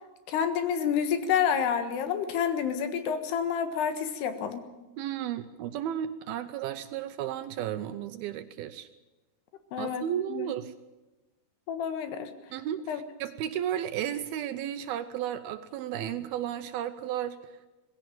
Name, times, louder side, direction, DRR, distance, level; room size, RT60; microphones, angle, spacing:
voice 1, 0.3-4.6 9.7-10.1 10.3-10.5 11.7-12.3 12.9-13.0, left 7 dB, 75° left, 9 dB, 3.5 m, -28 dB
voice 2, 5.0-8.9 9.8-10.7 12.5-17.5, right 10 dB, 75° right, 10 dB, 2.4 m, -33 dB
19.5 x 16.0 x 9.0 m, 1.1 s
omnidirectional pair, 4.9 m